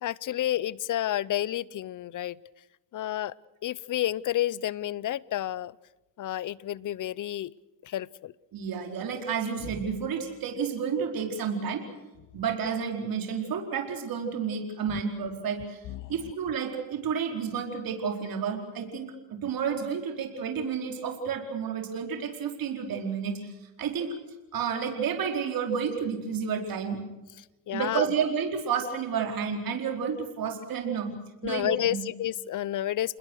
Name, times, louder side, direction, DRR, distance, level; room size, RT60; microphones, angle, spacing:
voice 1, 0.0-2.4 2.9-3.3 3.6-5.7 6.2-7.5 7.8-8.3 14.9-15.0 15.9-16.1 27.7-28.1 31.4-33.2, left 12 dB, 50° left, 22 dB, 0.8 m, -30 dB
voice 2, 8.5-11.9 12.3-24.1 24.5-27.0 27.7-31.1 31.4-32.0, right 6 dB, 55° right, 3 dB, 4.6 m, -31 dB
29.0 x 20.5 x 6.5 m, 1.1 s
cardioid pair, 105°, 41 cm